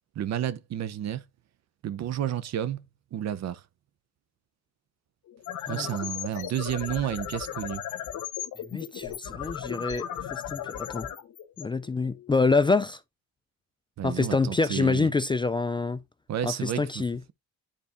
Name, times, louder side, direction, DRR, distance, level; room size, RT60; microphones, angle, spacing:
voice 1, 0.2-1.2 1.8-2.8 3.1-3.6 5.7-7.8 14.0-15.1 16.3-17.0, right 10 dB, 60° right, 0.7 m, -31 dB
sound 1, 5.3-12.4, left 10 dB, 75° left, 1.1 m, -36 dB
voice 2, 8.7-10.1 10.3-11.1 11.6-13.0 14.0-16.0 16.4-17.2, left 3 dB, 15° left, 0.3 m, -26 dB
10.0 x 4.2 x 2.5 m
cardioid pair, 90°, 30 cm